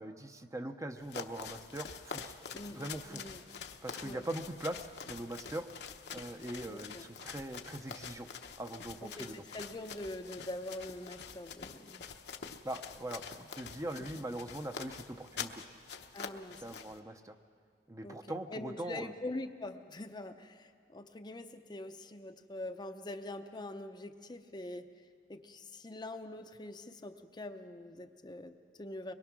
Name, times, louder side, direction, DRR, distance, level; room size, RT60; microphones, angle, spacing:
voice 1, 0.0-2.4 2.7-3.2 3.8-5.7 6.1-8.3 8.6-9.4 12.6-15.6 16.6-17.4 17.9-19.1, right 1 dB, 20° right, 6 dB, 0.7 m, -41 dB
sound 1, 1.0-17.0, left 6 dB, 65° left, 1.0 m, -46 dB
voice 2, 3.1-3.4 4.0-4.2 6.7-7.0 9.0-12.0 16.1-16.6 18.0-24.9 25.3-29.1, left 1 dB, 25° left, 7 dB, 0.7 m, -44 dB
23.0 x 22.0 x 6.1 m, 2.1 s
head